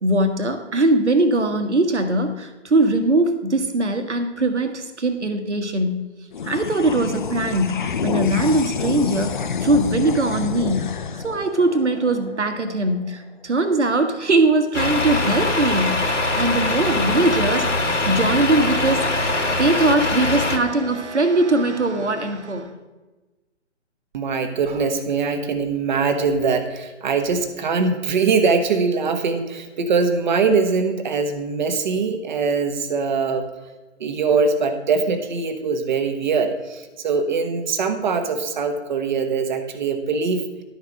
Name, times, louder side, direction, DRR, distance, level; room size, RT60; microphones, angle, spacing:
voice 1, 0.0-6.0 6.4-10.9 11.2-22.7, right 2 dB, 70° right, 8 dB, 1.4 m, -21 dB
sound 1, 6.3-13.0, left 6 dB, 45° left, 0.5 m, -28 dB
Truck, 14.7-20.6, left 2 dB, 85° left, 1.6 m, -22 dB
voice 2, 24.1-33.4 34.0-40.4, right 5 dB, 40° right, 7 dB, 1.1 m, -22 dB
11.5 x 4.7 x 6.4 m, 1.2 s
figure-of-eight pair, 135°, 36 cm